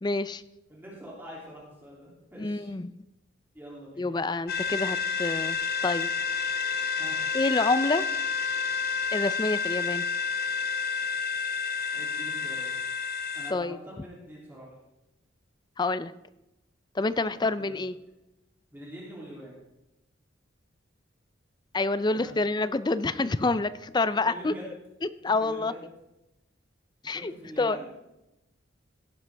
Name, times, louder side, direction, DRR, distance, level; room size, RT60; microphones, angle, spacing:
voice 1, 0.0-0.4 2.4-2.9 4.0-6.1 7.3-8.0 9.1-10.0 13.5-13.8 15.8-16.1 17.0-17.9 21.7-24.5 25.2-25.7 27.0-27.3 27.6-27.8, left 3 dB, 20° left, 14 dB, 0.4 m, -27 dB
voice 2, 0.7-2.7 3.5-4.1 7.0-7.2 11.9-12.7 13.3-14.7 17.3-17.8 18.7-19.6 22.1-22.3 24.2-24.7 25.4-25.8 27.1-27.9, equal, 10° right, -5 dB, 2.8 m, -44 dB
sound 1, 4.5-13.5, left 5 dB, 50° left, 0.9 m, -30 dB
17.0 x 9.9 x 3.4 m, 0.93 s
head